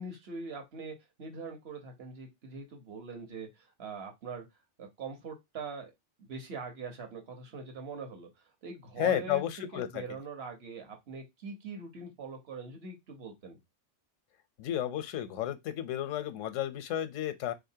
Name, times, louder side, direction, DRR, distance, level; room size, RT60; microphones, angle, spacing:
voice 1, 0.0-4.4 4.8-5.9 6.3-8.3 8.6-9.4 9.7-13.6, right 4 dB, 55° right, 1.3 m, -42 dB
voice 2, 9.0-10.0 14.6-17.5, left 11 dB, 85° left, 1.0 m, -32 dB
3.9 x 2.7 x 2.7 m
omnidirectional pair, 1.3 m